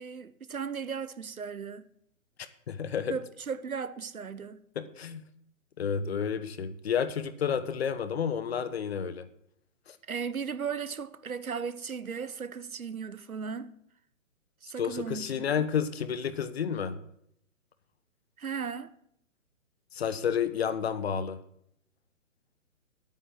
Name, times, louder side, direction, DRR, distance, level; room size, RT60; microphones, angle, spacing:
voice 1, 0.0-1.9 3.1-4.6 10.1-13.7 14.6-15.6 18.4-18.9, right 6 dB, 80° right, 1.1 m, -36 dB
voice 2, 2.7-3.1 4.7-5.2 5.8-9.3 9.9-10.0 14.8-17.0 19.9-21.4, left 7 dB, 45° left, 1.1 m, -30 dB
10.0 x 8.9 x 7.7 m
figure-of-eight pair, 135°, 42 cm